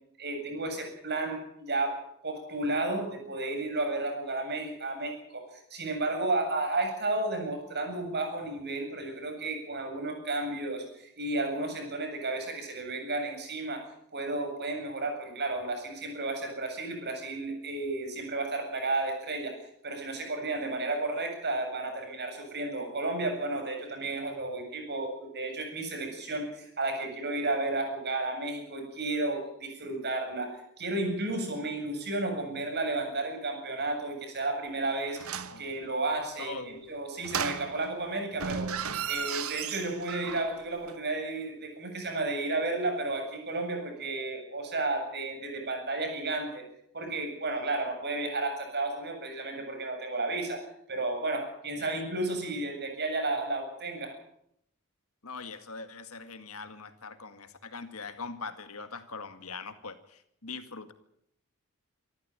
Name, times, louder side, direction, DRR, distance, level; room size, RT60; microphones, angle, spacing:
voice 1, 0.2-5.4 5.7-13.9 14.1-19.6 19.8-38.7 39.1-46.6 46.9-50.6 50.9-54.1, right 2 dB, 50° right, 4 dB, 7.8 m, -32 dB
sound 1, 35.2-35.6 37.2-38.0 38.3-40.6 40.9-41.0, right 7 dB, 70° right, 1.3 m, -35 dB
voice 2, 36.4-36.8 51.8-51.9 55.2-60.9, left 4 dB, 70° left, 9 dB, 2.0 m, -42 dB
26.5 x 14.0 x 9.0 m, 0.73 s
head